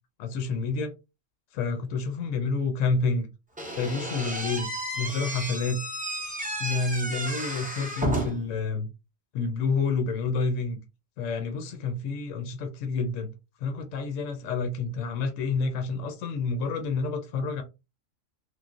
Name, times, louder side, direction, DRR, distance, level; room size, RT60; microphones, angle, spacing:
voice 1, 0.2-0.9 1.5-3.3 3.8-5.8 6.6-8.9 9.3-10.8 11.2-13.3 13.6-17.6, left 4 dB, 70° left, 0.9 m, -29 dB
Slam / Squeak, 3.6-8.5, right 1 dB, 10° right, 0.4 m, -32 dB
3.1 x 2.3 x 2.4 m
omnidirectional pair, 1.4 m